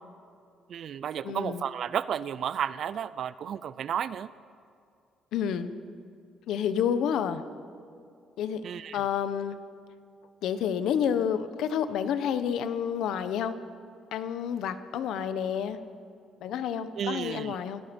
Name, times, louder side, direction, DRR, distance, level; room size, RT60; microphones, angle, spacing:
voice 1, 0.7-4.3 8.6-9.0 17.0-17.6, right 8 dB, 50° right, 15 dB, 0.5 m, -32 dB
voice 2, 1.2-1.6 5.3-5.7 6.5-7.4 8.4-8.6 8.9-9.6 10.4-13.6 14.1-15.8 16.4-17.8, left 8 dB, 75° left, 11 dB, 1.2 m, -29 dB
27.5 x 17.5 x 5.4 m, 2.5 s
cardioid pair, 140°, 0 cm